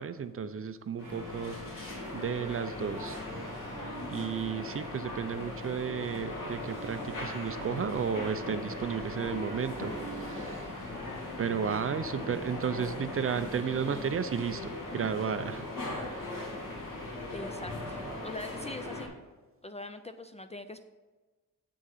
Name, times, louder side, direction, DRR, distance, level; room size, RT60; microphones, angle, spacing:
voice 1, 0.0-3.2 4.1-10.5 11.4-15.7, right 7 dB, 45° right, 11 dB, 0.5 m, -33 dB
sound 1, 1.0-19.1, left 2 dB, 75° left, 3.3 m, -39 dB
sound 2, 1.0-4.7 6.4-14.8, right 2 dB, 70° right, 1.2 m, -48 dB
sound 3, 7.0-10.4 10.8-11.2 11.6-11.8, left 1 dB, 45° left, 1.9 m, -51 dB
voice 2, 17.3-19.1 19.6-20.8, left 2 dB, 20° left, 9 dB, 0.3 m, -42 dB
7.8 x 6.3 x 5.7 m, 1.3 s
wide cardioid pair, 160°, 33 cm